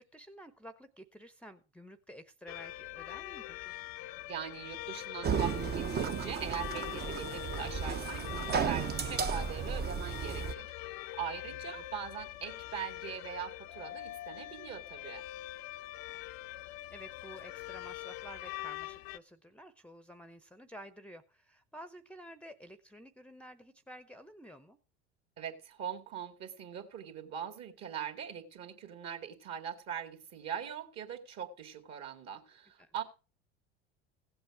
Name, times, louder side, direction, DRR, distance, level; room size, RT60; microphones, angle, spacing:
voice 1, 0.0-3.8 11.4-11.9 16.1-16.2 16.9-24.8 32.8-32.9, equal, 5° left, 0.8 m, -52 dB
sound 1, 2.5-19.2, left 16 dB, 60° left, 0.7 m, -43 dB
voice 2, 4.3-15.2 25.4-33.0, right 8 dB, 50° right, 2.2 m, -41 dB
sound 2, 5.2-10.5, right 6 dB, 30° right, 0.8 m, -34 dB
16.0 x 7.9 x 4.7 m
hypercardioid pair, 80°, 34 cm